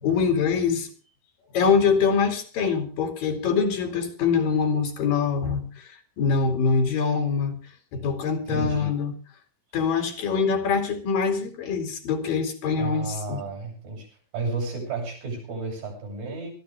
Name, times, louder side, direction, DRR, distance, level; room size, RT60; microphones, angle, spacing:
voice 1, 0.0-0.9 1.5-7.6 7.9-9.1 9.7-13.4, left 5 dB, 80° left, 3 dB, 4.4 m, -24 dB
voice 2, 8.5-8.9 12.8-14.1 14.3-16.5, right 3 dB, 80° right, 1 dB, 8.6 m, -32 dB
22.0 x 14.0 x 3.5 m, 0.37 s
omnidirectional pair, 3.9 m